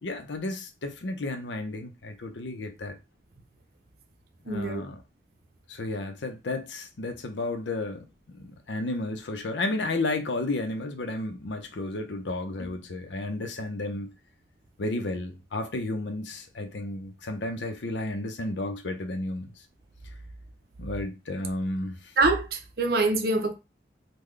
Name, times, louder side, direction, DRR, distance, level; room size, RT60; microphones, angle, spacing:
voice 1, 0.0-3.0 4.5-5.0 5.7-8.1 8.4-14.1 14.8-19.5 20.8-22.1, left 2 dB, 80° left, 0.6 m, -32 dB
voice 2, 4.5-4.8 22.2-23.5, right 3 dB, 55° right, 0.6 m, -25 dB
3.8 x 2.2 x 3.2 m
head